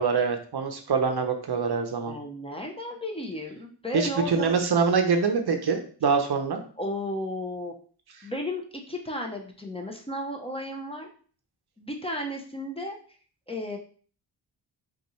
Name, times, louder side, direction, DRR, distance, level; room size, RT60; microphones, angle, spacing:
voice 1, 0.0-2.1 3.9-6.6, right 5 dB, 60° right, 5 dB, 0.7 m, -24 dB
voice 2, 2.1-4.6 6.8-7.7 8.2-11.1 11.8-12.9 13.5-13.8, left 1 dB, 15° left, 1 dB, 0.7 m, -34 dB
5.3 x 2.5 x 3.1 m, 0.43 s
wide cardioid pair, 90°, 44 cm